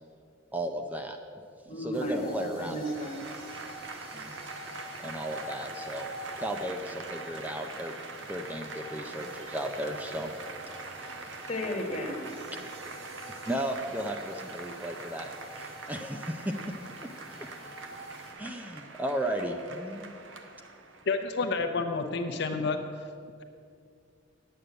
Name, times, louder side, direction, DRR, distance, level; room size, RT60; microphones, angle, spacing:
voice 1, 0.5-1.2 1.8-2.8 4.1-4.3 5.0-6.1 6.4-7.9 8.2-10.3 13.5-15.3 15.6-16.5 18.4-20.1, right 1 dB, 10° right, 5 dB, 0.5 m, -34 dB
voice 2, 1.6-3.2 11.5-12.3, equal, 35° left, 1 dB, 1.5 m, -34 dB
High pressure water pipe clearance, 1.9-18.3, equal, 30° right, 1.9 m, -47 dB
Applause / Crowd, 2.8-21.3, right 3 dB, 80° right, 1.0 m, -43 dB
voice 3, 21.1-22.8, left 4 dB, 65° left, 4 dB, 0.7 m, -29 dB
9.3 x 6.8 x 8.8 m, 2.3 s
head